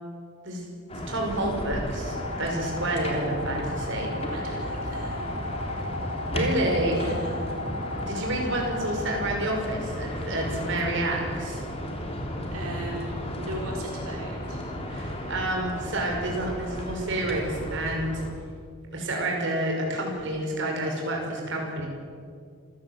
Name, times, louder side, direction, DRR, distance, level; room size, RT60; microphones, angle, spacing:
sound 1, 0.9-18.3, equal, 25° left, 3.5 m, -34 dB
voice 1, 1.1-4.1 6.3-7.0 8.1-11.6 14.9-18.2 18.9-21.9, right 1 dB, 55° right, 0 dB, 5.7 m, -29 dB
sound 2, 2.1-9.4, left 2 dB, 80° left, 2.4 m, -36 dB
voice 2, 4.0-5.3 6.9-7.3 12.5-14.7, right 1 dB, 80° right, -1 dB, 4.5 m, -38 dB
27.5 x 16.5 x 8.0 m, 2.2 s
head